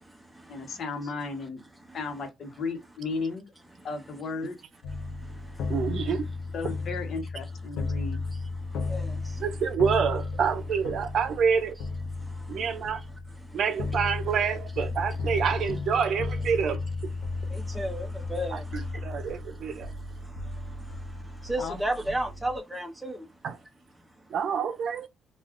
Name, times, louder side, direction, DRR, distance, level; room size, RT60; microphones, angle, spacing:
voice 1, 0.5-1.6 1.9-3.5 3.8-4.6 6.5-8.2 21.6-21.8, left 4 dB, 60° left, 1.0 m, -34 dB
sound 1, 4.8-22.6, left 3 dB, 80° left, 0.5 m, -34 dB
voice 2, 5.7-6.3 9.4-11.8 12.5-13.0 13.5-16.8 18.5-18.6 19.0-19.9 23.4-23.5 24.3-25.1, right 6 dB, 65° right, 0.6 m, -27 dB
voice 3, 17.7-18.6 21.5-23.2, right 1 dB, 5° right, 0.6 m, -31 dB
2.4 x 2.3 x 3.5 m
cardioid pair, 90°, 0 cm